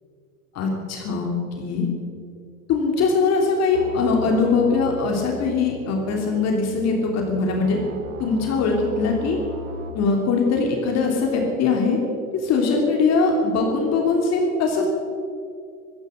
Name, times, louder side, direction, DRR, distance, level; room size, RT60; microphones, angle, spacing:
voice 1, 0.5-1.3 1.6-1.9 2.7-7.8 8.2-9.4 9.9-12.0 12.3-14.9, left 4 dB, 35° left, 1 dB, 3.0 m, -21 dB
sound 1, 3.7-9.9, right 2 dB, 60° right, 2.5 m, -37 dB
15.5 x 14.5 x 6.4 m, 2.4 s
hypercardioid pair, 110°, 43 cm